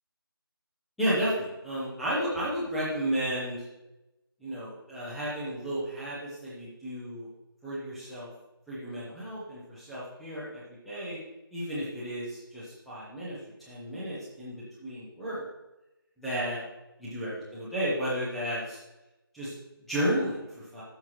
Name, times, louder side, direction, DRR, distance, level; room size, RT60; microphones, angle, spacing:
voice 1, 1.0-3.7 4.4-7.3 7.6-8.3 8.7-11.2 11.5-13.4 13.7-15.4 16.2-16.6 17.0-18.8 19.3-20.8, equal, ahead, -10 dB, 0.4 m, -33 dB
12.5 x 5.7 x 3.1 m, 0.96 s
figure-of-eight pair, 160°, 12 cm